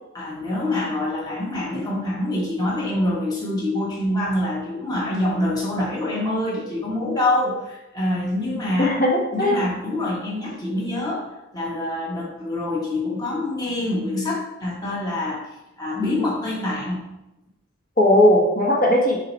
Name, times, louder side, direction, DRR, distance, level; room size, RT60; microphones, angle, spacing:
voice 1, 0.1-9.0 9.3-15.5 15.8-17.0, left 1 dB, 20° left, -5 dB, 1.2 m, -25 dB
voice 2, 8.8-9.6 18.0-19.2, left 1 dB, 45° left, -3 dB, 1.3 m, -17 dB
5.6 x 4.0 x 4.5 m, 0.92 s
head